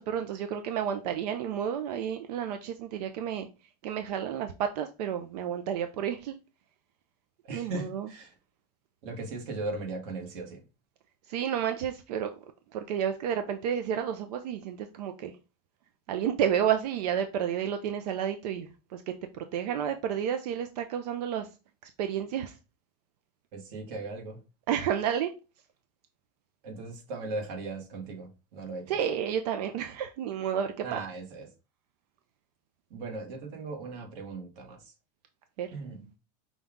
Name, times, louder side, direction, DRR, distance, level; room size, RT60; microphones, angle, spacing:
voice 1, 0.0-3.5 3.8-6.3 7.5-8.1 11.3-12.3 12.7-15.3 16.1-21.5 22.0-22.5 24.7-25.3 28.9-31.0 35.6-36.0, right 9 dB, 85° right, 0.5 m, -31 dB
voice 2, 7.4-8.3 9.0-10.6 23.5-24.4 26.6-29.0 30.8-31.5 32.9-34.9 35.7-36.1, right 3 dB, 55° right, 1.3 m, -38 dB
5.4 x 2.3 x 3.5 m
supercardioid pair, 165°, 20 cm